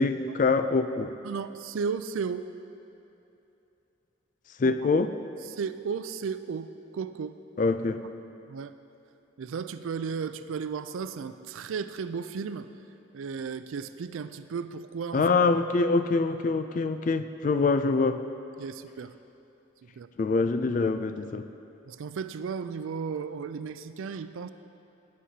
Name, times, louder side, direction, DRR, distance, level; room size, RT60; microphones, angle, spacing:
voice 1, 0.0-1.1 4.6-5.1 7.6-8.0 15.1-18.2 20.2-21.4, left 3 dB, 40° left, 10 dB, 0.3 m, -25 dB
voice 2, 1.2-2.5 4.6-4.7 5.5-7.4 8.5-8.7 9.4-12.7 13.1-15.3 18.6-19.1 19.8-20.1 21.9-24.5, right 6 dB, 90° right, 12 dB, 0.4 m, -34 dB
16.5 x 7.4 x 2.8 m, 2.9 s
head